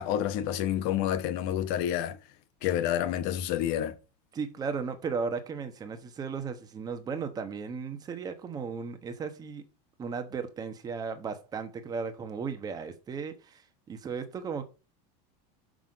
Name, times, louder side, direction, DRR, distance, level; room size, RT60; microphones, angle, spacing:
voice 1, 0.0-2.2 2.6-3.9, left 11 dB, 50° left, 1.1 m, -29 dB
voice 2, 4.3-9.6 10.0-14.6, right 5 dB, 20° right, 1.1 m, -35 dB
6.3 x 5.7 x 5.1 m
supercardioid pair, 165°, 21 cm